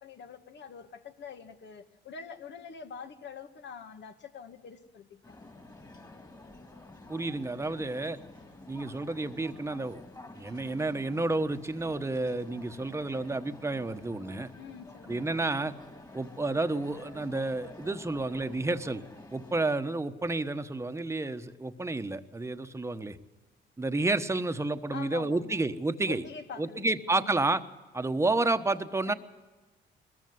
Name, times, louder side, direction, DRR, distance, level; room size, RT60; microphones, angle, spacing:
voice 1, 0.0-5.3 14.5-15.3 24.9-25.6 26.1-27.4 29.1-29.2, left 6 dB, 60° left, 1.9 m, -45 dB
sound 1, 5.2-19.7, left 2 dB, 20° left, 2.7 m, -50 dB
voice 2, 7.1-8.2 8.7-10.0 10.3-14.5 15.1-15.7 16.1-19.0 19.3-23.2 23.8-26.2 26.6-27.6 27.9-29.1, right 2 dB, 15° right, 1.2 m, -30 dB
20.5 x 14.5 x 9.6 m
cardioid pair, 90°, 20 cm